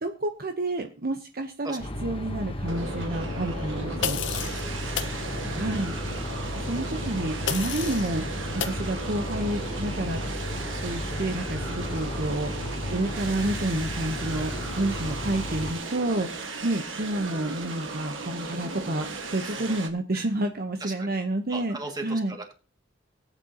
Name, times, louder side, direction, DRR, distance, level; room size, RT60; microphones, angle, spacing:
voice 1, 0.0-4.2 5.6-6.0 6.6-10.2 10.8-21.8 22.0-22.3, right 1 dB, 50° right, 5 dB, 1.0 m, -30 dB
sound 1, 1.8-15.7, left 1 dB, 30° left, 1.1 m, -34 dB
sound 2, 2.7-19.9, right 3 dB, 75° right, 1.6 m, -36 dB
sound 3, 4.0-4.6 5.0-5.2 7.5-8.1 8.6-8.8, left 9 dB, 70° left, 0.9 m, -30 dB
voice 2, 4.3-5.2 14.9-15.3 19.4-19.8 20.1-20.3 20.8-21.2 21.5-22.5, right 2 dB, 20° right, 2 dB, 2.2 m, -39 dB
18.5 x 9.1 x 2.9 m, 0.35 s
head